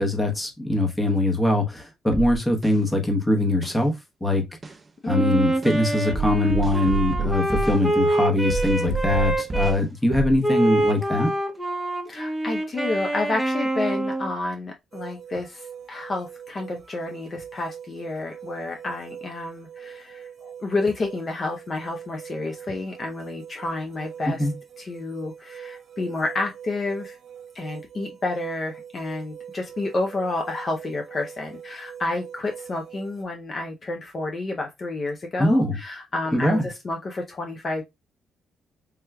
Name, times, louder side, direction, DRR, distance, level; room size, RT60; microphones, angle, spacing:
voice 1, 0.0-3.9 4.2-4.4 5.1-11.3 24.4-24.5 35.4-35.8 36.3-36.7, left 1 dB, 15° left, 1.0 m, -22 dB
sound 1, 2.1-2.8 3.6-3.8 4.6-4.8 5.6-5.8 6.1-7.8 8.5-9.8 10.1-10.4, right 4 dB, 30° right, 0.4 m, -29 dB
voice 2, 5.0-5.7 12.1-24.5 24.8-27.2 27.5-37.8, left 2 dB, 40° left, 0.6 m, -30 dB
Wind instrument woodwind instrument, 5.1-9.8 10.4-14.4, right 1 dB, 5° right, 0.8 m, -25 dB
sound 2, 14.9-33.2, right 8 dB, 50° right, 0.9 m, -43 dB
3.4 x 3.0 x 2.2 m
cardioid pair, 90°, 0 cm